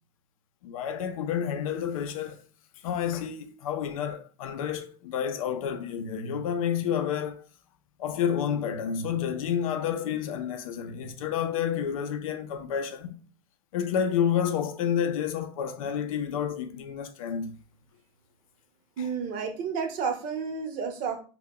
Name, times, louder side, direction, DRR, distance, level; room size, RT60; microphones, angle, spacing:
voice 1, 0.6-2.4 2.8-7.4 8.0-13.2 13.7-17.6 19.0-19.1, left 8 dB, 85° left, 0.4 m, -30 dB
voice 2, 19.0-21.2, right 6 dB, 55° right, 0.8 m, -31 dB
2.2 x 2.1 x 3.6 m
supercardioid pair, 105°, 17 cm